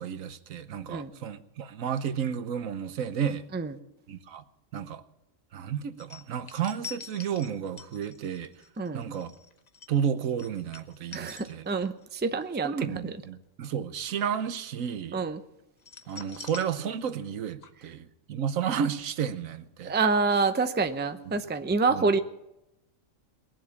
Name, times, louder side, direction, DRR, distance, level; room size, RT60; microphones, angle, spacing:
voice 1, 0.0-3.4 4.1-4.4 4.7-5.0 5.5-8.5 8.9-9.3 9.9-11.7 12.6-15.2 16.1-19.9 21.9-22.1, right 8 dB, 80° right, 12 dB, 1.3 m, -32 dB
sound 1, 6.0-12.1 12.4-12.7 15.8-17.4 17.6-17.7, left 5 dB, 35° left, 1.0 m, -46 dB
voice 2, 11.1-13.1 15.1-15.4 19.8-22.2, right 4 dB, 10° right, 9 dB, 0.5 m, -27 dB
21.0 x 7.7 x 7.1 m, 0.87 s
omnidirectional pair, 1.4 m